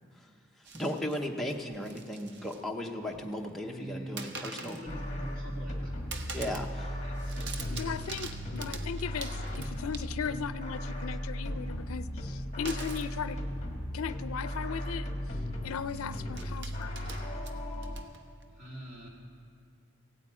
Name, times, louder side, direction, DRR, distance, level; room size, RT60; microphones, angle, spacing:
sound 1, 0.6-1.2 1.7-2.6 2.9-3.5 4.2-4.9 5.3-5.8 6.1-6.7 7.0-10.4 12.7-13.1 14.1-14.2 14.5-14.7 15.8-18.4, right 4 dB, 50° right, 0.9 m, -45 dB
voice 1, 0.7-4.8 6.3-7.0, left 1 dB, ahead, 0 dB, 0.8 m, -36 dB
voice 2, 3.6-6.0 7.2-7.8 18.5-19.1, equal, 35° right, -2 dB, 2.3 m, -44 dB
sound 2, 4.9-18.0, equal, 30° left, 1.6 m, -36 dB
voice 3, 7.7-13.4 13.9-15.1 15.6-17.0, left 6 dB, 80° left, 14 dB, 0.4 m, -37 dB
16.0 x 9.0 x 8.6 m, 2.4 s
head